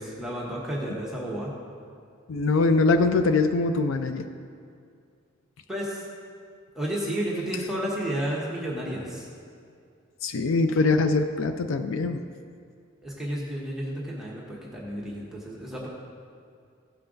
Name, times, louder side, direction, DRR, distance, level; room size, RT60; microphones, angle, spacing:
voice 1, 0.0-1.5 5.7-6.0 6.7-9.3 13.0-15.9, right 1 dB, ahead, -5 dB, 1.3 m, -32 dB
voice 2, 2.3-4.2 10.2-12.2, left 3 dB, 70° left, 8 dB, 0.4 m, -23 dB
16.0 x 5.6 x 3.9 m, 2.3 s
head